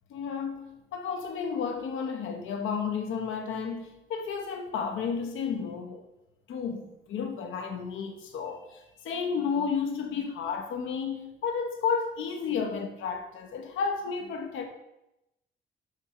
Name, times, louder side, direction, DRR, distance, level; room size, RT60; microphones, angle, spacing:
voice 1, 0.1-6.0 6.5-14.6, left 6 dB, 80° left, 1.2 m, -32 dB
7.2 x 6.0 x 4.8 m
cardioid pair, 90°, 20 cm